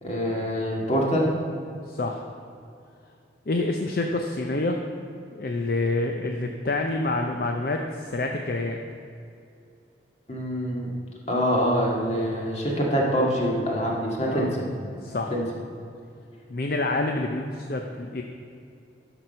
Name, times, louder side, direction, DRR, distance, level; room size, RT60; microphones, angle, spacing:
voice 1, 0.0-1.3 10.3-10.9 11.3-14.7 15.3-15.4, equal, 35° left, -2 dB, 1.9 m, -25 dB
voice 2, 1.9-2.2 3.5-4.8 5.3-8.8 14.3-14.5 15.0-15.3 16.5-18.2, left 2 dB, 55° left, 3 dB, 0.6 m, -27 dB
12.0 x 6.1 x 5.4 m, 2.5 s
head